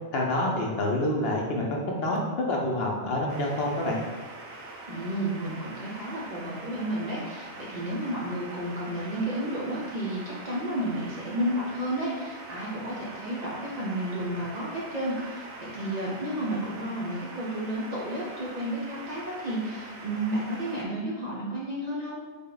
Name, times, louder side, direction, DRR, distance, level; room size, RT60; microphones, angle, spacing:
voice 1, 0.1-4.0, left 1 dB, 65° left, -1 dB, 0.8 m, -27 dB
sound 1, 3.3-20.8, right 2 dB, 85° right, 1.0 m, -43 dB
voice 2, 4.9-22.2, right 1 dB, 50° right, -5 dB, 0.6 m, -32 dB
3.5 x 2.2 x 3.8 m, 1.3 s
omnidirectional pair, 1.2 m